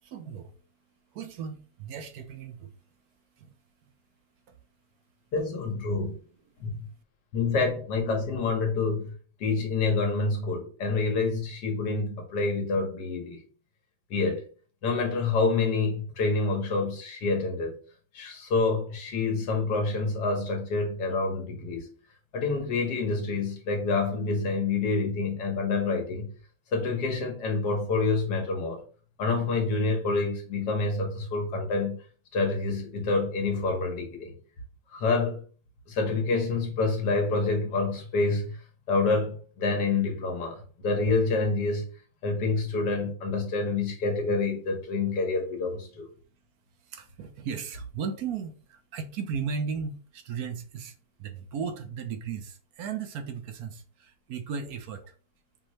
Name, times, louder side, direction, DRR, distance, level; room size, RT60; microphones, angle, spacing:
voice 1, 0.0-0.5 1.1-2.7 3.4-3.6 4.5-4.6 46.8-50.9 51.2-55.1, right 6 dB, 70° right, 1.1 m, -36 dB
voice 2, 5.3-6.2 6.6-6.9 7.3-9.1 9.4-13.4 14.1-14.4 14.8-17.8 18.1-21.9 22.3-26.3 26.7-28.8 29.2-32.0 32.3-34.3 34.9-35.4 35.9-38.6 38.9-41.9 42.2-46.1, left 3 dB, 85° left, 1.7 m, -27 dB
5.3 x 2.7 x 3.1 m
omnidirectional pair, 1.7 m